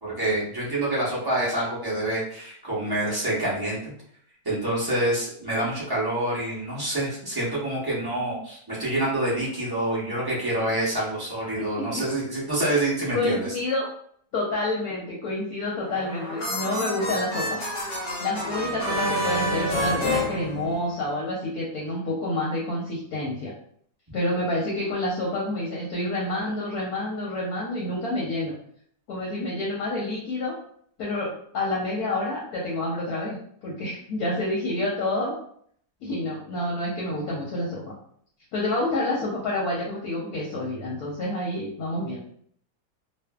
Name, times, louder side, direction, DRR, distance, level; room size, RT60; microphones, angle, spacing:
voice 1, 0.0-3.9 4.4-13.5, right 1 dB, 30° right, -8 dB, 0.4 m, -27 dB
voice 2, 11.5-12.0 13.1-13.9 14.3-17.6 17.9-23.5 24.1-28.5 29.1-30.5 31.0-35.3 36.0-37.9 38.5-42.3, left 1 dB, 70° left, -4 dB, 1.0 m, -28 dB
sound 1, 15.8-21.2, equal, 85° left, 0.4 m, -28 dB
2.6 x 2.4 x 2.2 m, 0.63 s
omnidirectional pair, 1.9 m